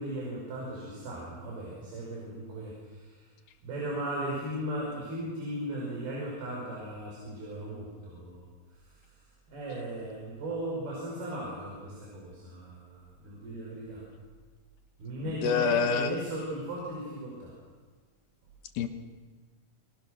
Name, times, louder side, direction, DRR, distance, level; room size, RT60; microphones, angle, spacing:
voice 1, 0.0-3.3 3.6-8.5 8.8-9.0 9.5-14.0 15.0-17.5, right 1 dB, 90° right, -4 dB, 7.4 m, -37 dB
voice 2, 15.2-16.2 18.8-18.9, left 5 dB, 75° left, 7 dB, 3.1 m, -27 dB
28.0 x 24.0 x 6.4 m, 1.4 s
omnidirectional pair, 4.3 m